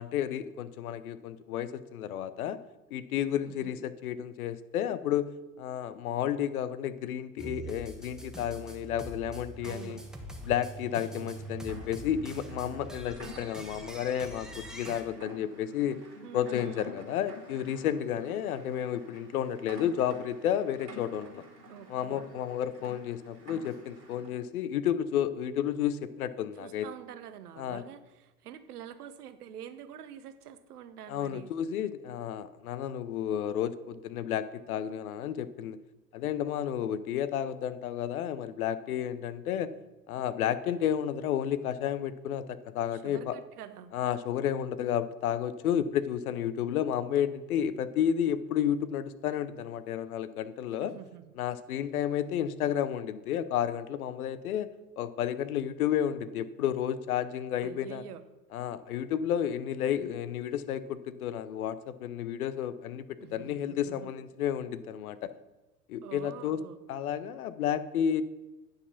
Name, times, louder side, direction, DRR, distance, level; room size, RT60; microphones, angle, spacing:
voice 1, 0.0-2.6 2.9-5.3 5.6-10.0 10.4-16.0 16.3-21.4 21.9-26.9 27.6-27.8 31.1-35.8 36.1-39.7 40.1-43.3 43.9-50.9 51.4-54.7 55.0-58.0 58.5-63.0 63.3-65.3 65.9-66.6 66.9-68.2, left 10 dB, 65° left, 14 dB, 0.7 m, -31 dB
voice 2, 3.4-3.8 9.6-10.0 16.2-16.9 21.7-22.2 26.6-31.5 42.9-43.9 50.8-51.3 57.6-58.2 63.2-64.1 66.0-66.8, right 9 dB, 70° right, 12 dB, 0.9 m, -46 dB
sound 1, 7.4-15.0, right 2 dB, ahead, 0.9 m, -43 dB
Rain, 11.0-24.4, left 1 dB, 90° right, 2.2 m, -49 dB
9.4 x 5.1 x 5.9 m, 1.1 s
figure-of-eight pair, 85°, 48 cm